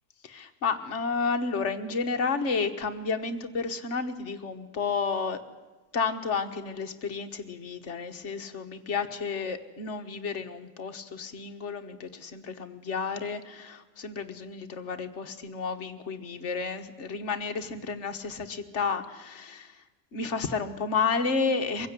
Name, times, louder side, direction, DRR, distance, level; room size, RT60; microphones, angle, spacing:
voice 1, 0.2-5.4 5.9-19.8 20.1-21.9, left 5 dB, 45° left, 7 dB, 1.6 m, -31 dB
23.5 x 16.0 x 9.7 m, 1.3 s
omnidirectional pair, 1.7 m